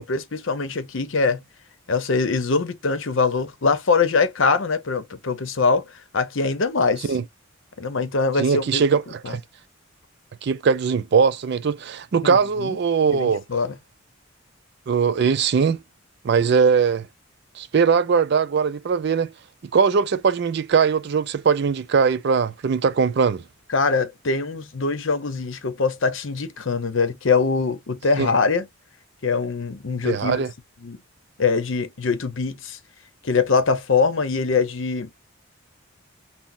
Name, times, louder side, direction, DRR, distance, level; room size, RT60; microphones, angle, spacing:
voice 1, 0.0-1.4 1.9-5.9 6.1-7.1 7.8-8.8 9.2-9.4 12.2-12.8 13.1-13.8 23.7-28.7 29.2-30.5 30.8-31.0 31.4-32.8 33.2-35.1, left 4 dB, 65° left, 0.7 m, -23 dB
voice 2, 8.4-9.4 10.4-13.4 14.9-15.8 16.2-17.1 17.6-19.3 19.7-23.4 28.2-28.3 30.0-30.5, right 6 dB, 55° right, 0.4 m, -20 dB
5.9 x 2.0 x 2.6 m
head